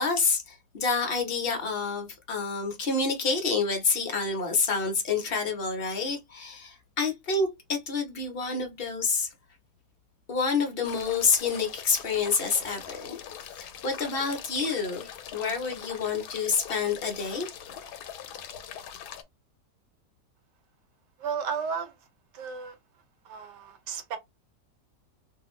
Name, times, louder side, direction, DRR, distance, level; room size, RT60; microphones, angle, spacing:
voice 1, 0.0-9.3 10.3-17.8, left 4 dB, 55° left, 0.6 m, -28 dB
sound 1, 10.8-19.2, left 9 dB, 75° left, 1.1 m, -42 dB
voice 2, 21.2-21.9 22.3-22.8 23.2-24.2, right 6 dB, 80° right, 1.3 m, -33 dB
2.7 x 2.4 x 3.0 m
omnidirectional pair, 1.8 m